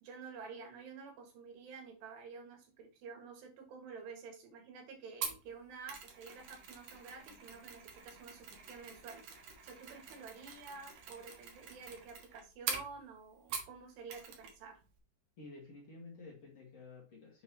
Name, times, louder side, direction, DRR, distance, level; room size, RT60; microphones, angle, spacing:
voice 1, 0.0-9.2 9.6-14.8, right 5 dB, 90° right, 3 dB, 3.8 m, -50 dB
Mechanisms, 5.2-13.8 14.1-14.6 14.8-15.0, right 5 dB, 60° right, 2.4 m, -45 dB
voice 2, 15.4-17.4, left 3 dB, 50° left, -2 dB, 2.2 m, -52 dB
7.5 x 5.4 x 2.9 m, 0.34 s
omnidirectional pair, 4.7 m